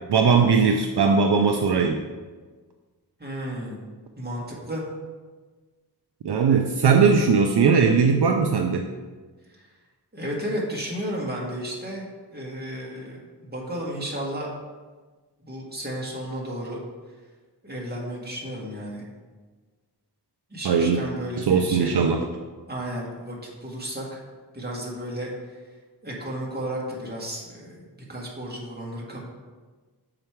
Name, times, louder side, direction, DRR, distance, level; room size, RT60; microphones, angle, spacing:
voice 1, 0.1-2.0 6.2-8.9 20.6-21.0 21.4-22.3, right 5 dB, 70° right, 4 dB, 0.5 m, -19 dB
voice 2, 3.2-3.8 4.2-4.8 9.5-9.7 10.1-12.1 12.3-14.5 15.4-16.8 17.6-19.0 20.5-22.0 22.7-24.2 24.5-25.6 26.0-27.8 28.1-29.3, equal, 25° right, -3 dB, 1.7 m, -33 dB
6.6 x 5.0 x 4.5 m, 1.4 s
wide cardioid pair, 80°, 41 cm